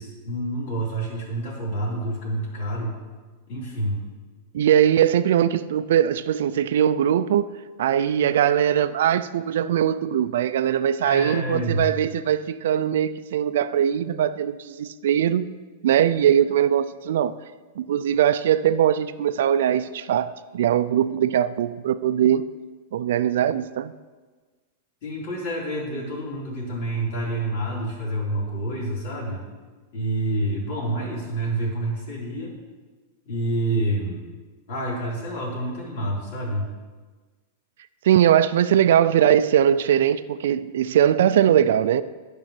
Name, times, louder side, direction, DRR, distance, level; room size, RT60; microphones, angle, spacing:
voice 1, 0.0-3.0 3.5-4.0 11.0-11.8 25.0-29.4 29.9-32.6 33.2-34.2 34.7-36.7, right 1 dB, 60° left, 3.5 m, -28 dB
voice 2, 4.5-7.5 7.8-15.5 15.8-17.4 17.8-22.5 22.9-23.9 38.0-42.0, right 10 dB, 75° right, 0.4 m, -21 dB
10.5 x 5.5 x 5.8 m
supercardioid pair, 150°, 0 cm